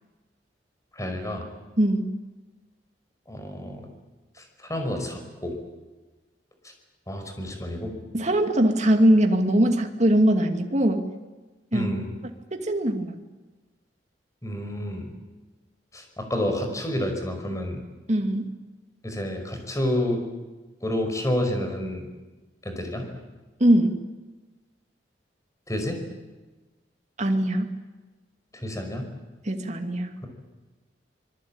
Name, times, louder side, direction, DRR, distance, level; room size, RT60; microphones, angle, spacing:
voice 1, 0.9-1.4 3.3-3.8 4.4-5.6 7.1-7.9 11.7-12.1 14.4-15.1 15.9-17.8 19.0-20.2 20.8-22.1 22.6-23.1 25.7-26.0 28.5-29.0, left 1 dB, 20° left, 5 dB, 5.4 m, -29 dB
voice 2, 1.8-2.1 8.1-11.1 11.7-11.9 12.5-13.2 18.1-18.5 23.6-24.0 27.2-27.7 29.4-30.1, right 1 dB, 40° right, 5 dB, 2.4 m, -21 dB
25.5 x 22.0 x 8.9 m, 1.2 s
head